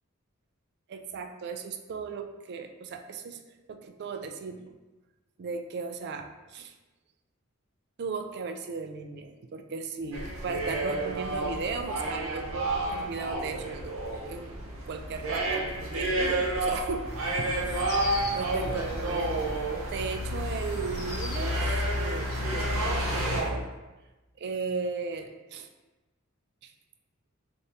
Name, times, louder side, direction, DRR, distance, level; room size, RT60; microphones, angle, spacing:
voice 1, 0.9-3.4 3.7-4.7 5.4-6.8 8.0-14.0 14.3-14.6 14.9-17.9 18.3-19.5 19.9-23.7 24.4-25.7 26.6-26.7, right 4 dB, 50° right, 7 dB, 0.3 m, -36 dB
sound 1, 10.1-23.4, right 1 dB, 75° right, 0.7 m, -30 dB
sound 2, 17.0-23.5, left 1 dB, 50° left, 0.9 m, -41 dB
4.0 x 2.5 x 3.3 m, 1.1 s
head